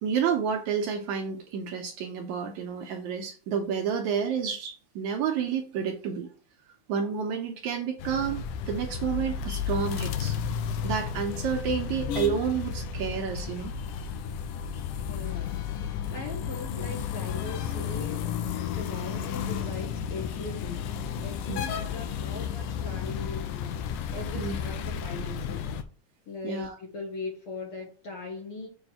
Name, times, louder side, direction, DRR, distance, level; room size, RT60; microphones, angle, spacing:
voice 1, 0.0-6.3 6.9-10.4 10.8-13.7 21.5-21.6 24.4-24.6 26.4-26.8, right 7 dB, 75° right, 4 dB, 1.9 m, -30 dB
sound 1, 8.0-25.8, left 7 dB, 80° left, 2.1 m, -33 dB
voice 2, 15.1-18.3 18.7-20.9 21.2-23.7 24.1-25.7 26.3-28.7, left 3 dB, 55° left, 0 dB, 1.7 m, -39 dB
7.1 x 3.2 x 5.8 m, 0.38 s
omnidirectional pair, 3.9 m